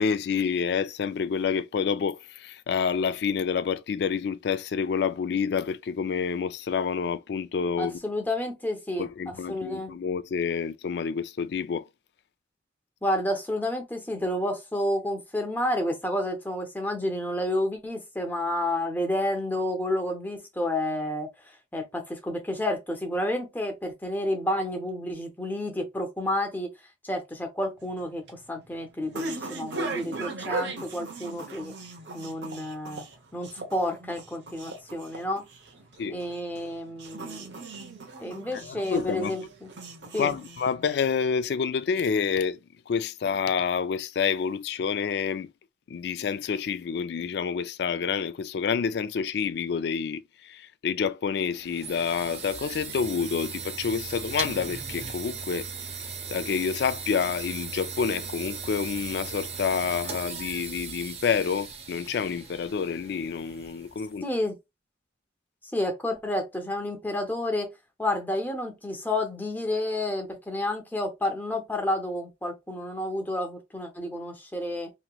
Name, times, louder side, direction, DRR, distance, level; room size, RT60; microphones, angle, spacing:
voice 1, 0.0-7.9 9.0-11.8 36.0-36.2 38.5-39.3 40.2-42.6 42.9-45.5 45.9-55.7 56.3-64.2, left 6 dB, 60° left, 0.3 m, -28 dB
voice 2, 7.8-9.9 13.0-26.7 27.0-31.7 32.1-33.0 33.3-35.5 36.1-37.7 38.2-39.7 40.1-40.3 64.2-64.6 65.7-67.7 68.0-74.9, left 1 dB, 10° left, 0.7 m, -30 dB
sound 1, 27.8-41.4, right 3 dB, 70° right, 0.8 m, -39 dB
sound 2, 51.3-64.1, right 5 dB, 35° right, 0.6 m, -38 dB
3.0 x 2.8 x 2.3 m
head